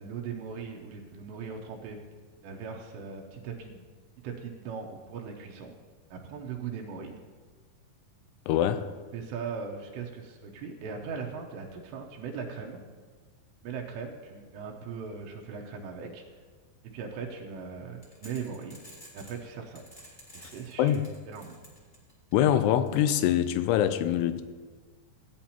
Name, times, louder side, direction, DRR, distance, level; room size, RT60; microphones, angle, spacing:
voice 1, 0.0-2.0 2.4-3.8 4.2-5.7 6.1-7.2 9.1-12.8 13.6-16.4 16.9-18.8 19.1-19.8 20.3-21.6, right 6 dB, 90° right, 0 dB, 3.0 m, -39 dB
voice 2, 8.5-8.8 20.8-21.0 22.3-24.4, left 11 dB, 85° left, 12 dB, 2.6 m, -24 dB
sound 1, 18.1-19.4 19.8-22.3 22.9-23.0, equal, 20° left, 1.2 m, -50 dB
15.5 x 9.2 x 2.9 m, 1.5 s
omnidirectional pair, 4.9 m